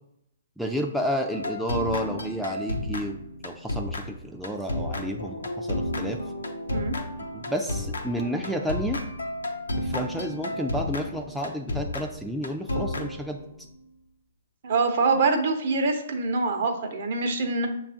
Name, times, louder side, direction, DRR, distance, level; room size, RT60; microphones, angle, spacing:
voice 1, 0.6-6.2 7.3-9.0 9.8-13.4, equal, ahead, 1 dB, 0.3 m, -31 dB
sound 1, 1.3-13.7, left 1 dB, 85° left, 0.5 m, -32 dB
voice 2, 14.6-17.7, right 3 dB, 55° right, 4 dB, 0.7 m, -24 dB
6.5 x 2.3 x 2.6 m, 0.76 s
hypercardioid pair, 130°, 0 cm